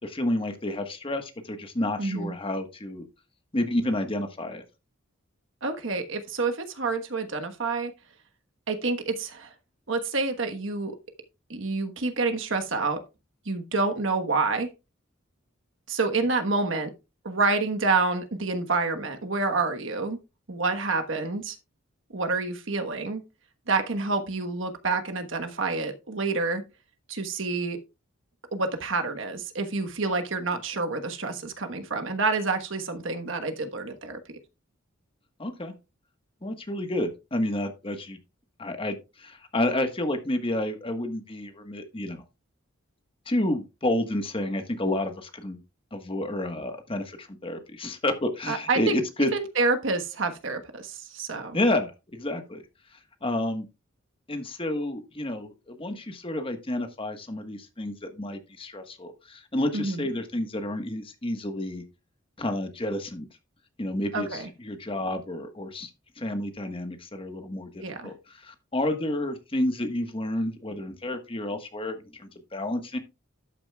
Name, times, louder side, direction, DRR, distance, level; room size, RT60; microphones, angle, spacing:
voice 1, 0.0-3.0 3.5-4.6 35.4-35.7 36.4-38.2 38.6-42.2 43.3-45.6 45.9-49.3 51.5-52.6 52.9-53.7 54.3-61.8 62.4-63.3 63.8-65.9 66.2-73.0, left 1 dB, 25° left, 1.3 m, -30 dB
voice 2, 2.0-2.3 5.6-7.9 8.7-9.5 9.9-11.0 11.5-13.0 13.4-14.7 15.9-16.9 17.2-20.2 20.5-21.6 22.1-23.2 23.7-26.6 27.1-27.8 28.5-34.2 48.5-49.0 49.3-51.6 59.7-60.1 64.1-64.5 67.8-68.1, right 3 dB, 65° right, 1.3 m, -28 dB
12.5 x 8.8 x 2.3 m
head